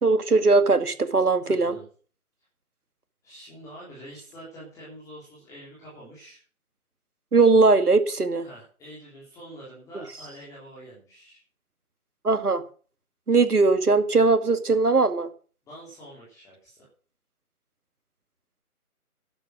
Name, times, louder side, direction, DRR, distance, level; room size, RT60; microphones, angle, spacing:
voice 1, 0.0-1.8 7.3-8.5 12.2-12.6 13.3-15.3, right 3 dB, 90° right, 2.2 m, -20 dB
voice 2, 1.4-1.8 3.2-6.4 8.4-11.4 15.7-16.9, right 1 dB, 5° left, 3.6 m, -46 dB
12.5 x 9.9 x 6.3 m
figure-of-eight pair, 155°, 44 cm